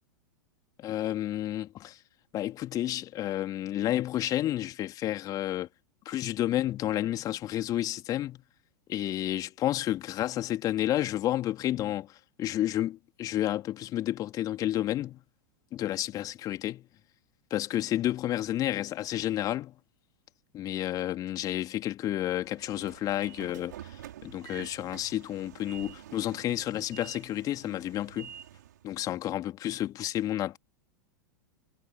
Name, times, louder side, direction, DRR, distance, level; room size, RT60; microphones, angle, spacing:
voice 1, 0.8-2.0 2.3-5.7 6.0-8.4 8.9-15.2 15.7-16.9 17.5-19.8 20.5-28.3 28.8-30.6, left 13 dB, 35° left, 2.6 m, -31 dB
Train / Sliding door, 22.3-28.8, right 10 dB, 65° right, 4.9 m, -48 dB
figure-of-eight pair, 90°, 11 cm